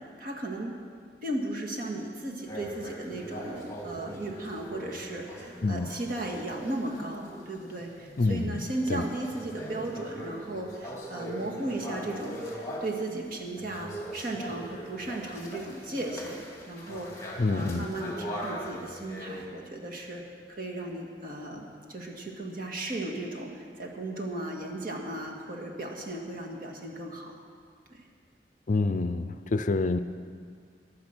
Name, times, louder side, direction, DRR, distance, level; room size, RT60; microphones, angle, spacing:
voice 1, 0.2-0.8 1.2-20.2 20.5-27.3 27.9-28.0, right 1 dB, 55° right, 0 dB, 2.0 m, -36 dB
sound 1, 2.5-13.1 13.6-19.5, equal, 20° left, 2.4 m, -41 dB
voice 2, 8.2-8.6 8.9-9.0 17.4-17.8 28.7-30.0, left 3 dB, 45° left, 11 dB, 0.5 m, -27 dB
15.5 x 11.0 x 6.1 m, 2.1 s
head